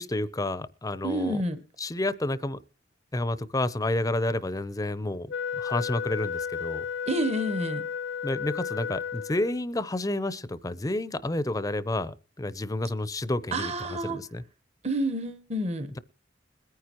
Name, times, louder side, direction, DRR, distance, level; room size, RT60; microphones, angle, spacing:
voice 1, 0.0-1.4 1.8-2.6 3.1-5.3 5.6-6.9 8.2-14.4, left 1 dB, 20° left, 0.6 m, -30 dB
voice 2, 1.0-1.6 7.1-7.8 13.5-14.2 14.8-15.9, right 1 dB, 35° right, 0.9 m, -29 dB
Wind instrument woodwind instrument, 5.3-9.7, left 7 dB, 85° left, 1.0 m, -33 dB
22.0 x 9.6 x 3.0 m
head